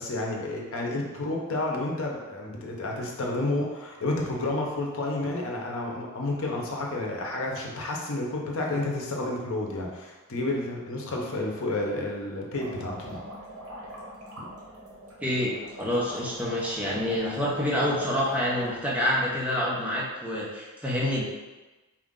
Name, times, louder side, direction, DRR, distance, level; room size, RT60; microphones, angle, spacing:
voice 1, 0.0-13.2, left 2 dB, 65° left, -1 dB, 0.8 m, -30 dB
sound 1, 12.5-18.7, equal, 80° right, 1.1 m, -42 dB
voice 2, 15.2-21.2, left 1 dB, 5° right, -6 dB, 0.8 m, -27 dB
4.5 x 2.5 x 3.7 m, 1.1 s
head